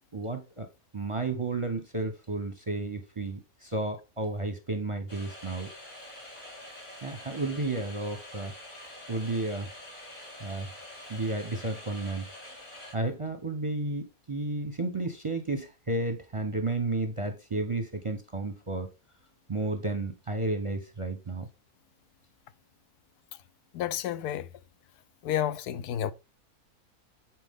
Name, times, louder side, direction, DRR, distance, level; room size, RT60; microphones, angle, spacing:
voice 1, 0.1-0.7 0.9-5.7 7.0-8.5 9.1-9.7 10.4-10.7 11.1-12.3 12.9-18.9 19.5-21.5, right 2 dB, 25° right, 0.7 m, -32 dB
sound 1, 5.1-12.9, left 1 dB, 70° left, 5.2 m, -46 dB
voice 2, 23.7-24.5 25.2-26.1, left 11 dB, 85° left, 1.1 m, -30 dB
8.9 x 4.6 x 3.6 m
omnidirectional pair, 1.6 m